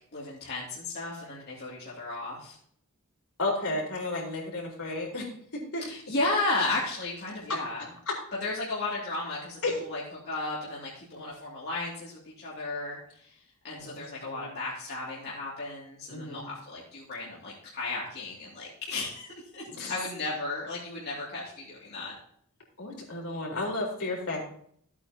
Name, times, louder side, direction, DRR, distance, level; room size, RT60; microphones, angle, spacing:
voice 1, 0.1-2.6 5.8-7.8 8.4-13.3 13.6-19.3 19.5-22.1, left 2 dB, 50° left, -7 dB, 2.6 m, -34 dB
voice 2, 3.4-5.3 5.7-5.8 7.5-7.6 8.1-8.2 9.6-9.8 13.8-14.5 16.1-16.5 19.7-20.0 22.8-24.4, left 2 dB, 75° left, -2 dB, 4.3 m, -32 dB
15.0 x 8.6 x 2.9 m, 0.62 s
head